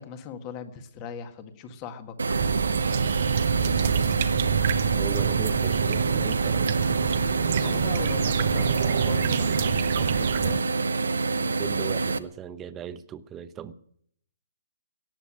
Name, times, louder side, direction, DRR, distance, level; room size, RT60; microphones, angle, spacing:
voice 1, 0.0-2.4 7.5-10.7, left 7 dB, 30° left, 9 dB, 1.8 m, -39 dB
sound 1, 2.2-12.2, right 3 dB, 85° right, 0.9 m, -27 dB
sound 2, 2.3-10.6, right 8 dB, 50° right, 1.0 m, -27 dB
voice 2, 4.9-6.7 11.4-13.7, right 9 dB, 20° right, 12 dB, 0.9 m, -37 dB
17.5 x 7.1 x 9.9 m, 0.66 s
hypercardioid pair, 140°, 0 cm